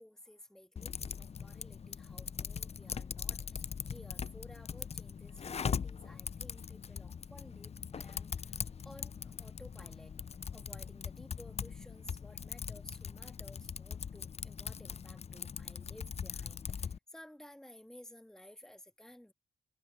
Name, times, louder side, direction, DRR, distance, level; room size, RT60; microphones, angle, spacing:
voice 1, 0.0-8.6 8.8-10.2 10.5-19.3, left 1 dB, 5° left, 1.6 m, -56 dB
Typing, 0.8-17.0, left 6 dB, 40° left, 0.5 m, -41 dB
supercardioid pair, 55°, 17 cm